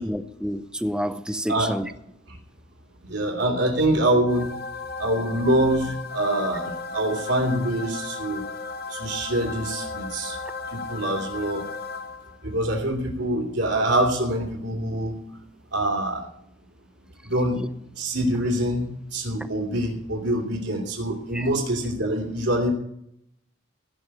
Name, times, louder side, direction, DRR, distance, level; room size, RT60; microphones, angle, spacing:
voice 1, 0.0-1.9 21.3-21.5, equal, 5° right, 0.6 m, -29 dB
voice 2, 3.0-4.5 5.0-8.4 8.9-10.4 10.7-11.6 12.4-15.1 15.7-16.3 17.2-17.6 18.0-22.7, right 1 dB, 70° right, 2.6 m, -25 dB
sound 1, 4.3-12.5, left 4 dB, 50° left, 0.8 m, -35 dB
16.5 x 5.6 x 10.0 m
head